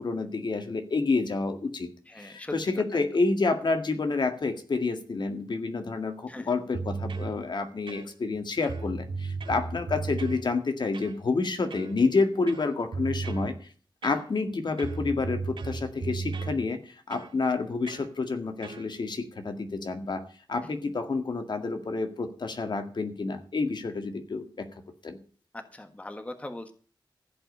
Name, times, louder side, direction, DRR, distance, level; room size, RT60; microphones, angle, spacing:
voice 1, 0.0-1.9 2.2-13.5 14.0-20.2 20.5-24.7 25.0-25.2, left 3 dB, 65° left, 7 dB, 2.0 m, -29 dB
voice 2, 2.1-2.5 2.9-3.0 6.3-6.5 25.5-26.7, left 1 dB, 15° left, 6 dB, 1.4 m, -40 dB
sound 1, 6.7-7.3 7.9-8.4 8.6-10.4 10.9-11.2 11.7-12.0 12.5-13.5 14.0-14.5 14.8-16.6 17.1-17.3 17.9-18.1 18.6-18.9, right 4 dB, 85° right, 2.0 m, -35 dB
15.5 x 5.4 x 9.8 m, 0.42 s
wide cardioid pair, 100°, 8 cm